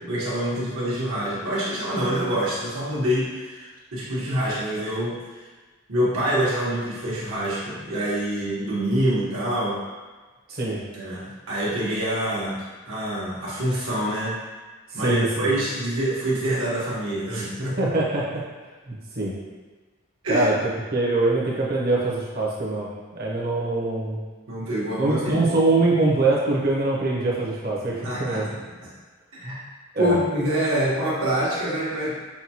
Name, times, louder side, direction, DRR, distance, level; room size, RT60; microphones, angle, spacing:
voice 1, 0.0-5.4 5.9-9.8 10.9-14.4 14.9-17.8 20.2-20.5 24.5-25.5 28.0-28.6 29.3-29.6 30.0-32.1, right 1 dB, 75° right, -7 dB, 1.3 m, -26 dB
voice 2, 10.5-10.8 14.9-15.5 17.8-18.4 18.9-19.3 20.3-20.6 20.9-22.9 23.1-24.2 25.0-28.5 29.9-30.2, right 2 dB, 45° right, -4 dB, 0.8 m, -23 dB
5.8 x 2.3 x 2.8 m, 1.3 s
head